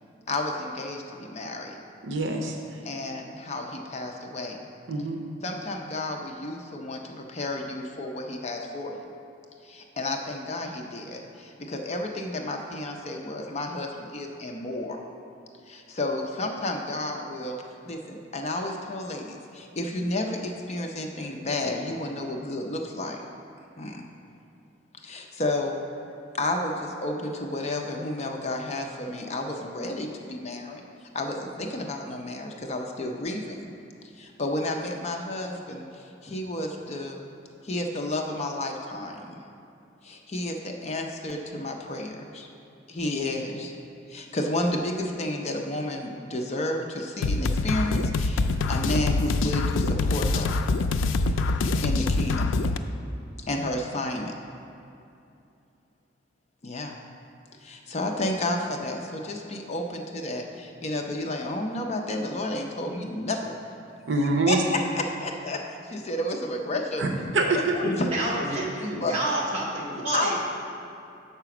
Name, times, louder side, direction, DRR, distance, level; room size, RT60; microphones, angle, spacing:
voice 1, 0.3-1.7 2.8-4.6 5.4-9.1 9.6-15.0 15.7-17.6 17.9-23.2 23.8-24.0 25.0-25.8 26.3-30.8 31.1-33.7 34.2-37.3 37.6-39.4 40.0-42.5 42.9-43.7 44.1-50.6 51.8-52.6 53.5-54.3 56.6-57.0 57.6-63.6 64.5-67.1 67.5-68.1 69.0-69.2 70.1-70.3, left 1 dB, 35° left, 2 dB, 0.5 m, -31 dB
voice 2, 2.0-2.6 4.9-5.2 64.1-64.6 67.0-67.1 67.3-67.7 68.6-68.7, right 3 dB, 70° right, 2 dB, 0.6 m, -24 dB
sound 1, 47.2-52.8, left 3 dB, 85° left, 0.3 m, -25 dB
voice 3, 67.8-70.4, right 1 dB, 35° right, -5 dB, 1.6 m, -29 dB
6.8 x 4.9 x 5.9 m, 2.7 s
head